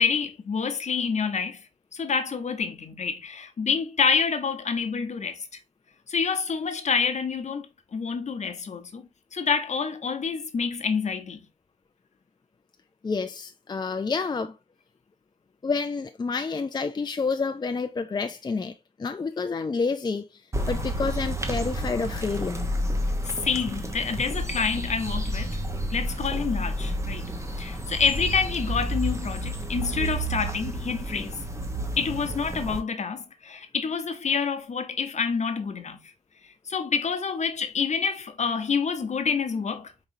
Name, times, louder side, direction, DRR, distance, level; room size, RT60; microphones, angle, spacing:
voice 1, 0.0-1.6 1.9-5.5 6.1-7.7 7.9-9.0 9.3-11.4 23.2-25.6 25.9-27.3 27.6-31.4 32.0-36.0 36.7-40.1, left 5 dB, 60° left, 0.9 m, -27 dB
voice 2, 13.0-14.5 15.6-18.7 19.0-20.4 20.7-22.7, left 4 dB, 35° left, 0.4 m, -29 dB
sound 1, 20.5-32.8, equal, 20° right, 0.9 m, -30 dB
4.9 x 3.1 x 2.6 m
cardioid pair, 75°, 13 cm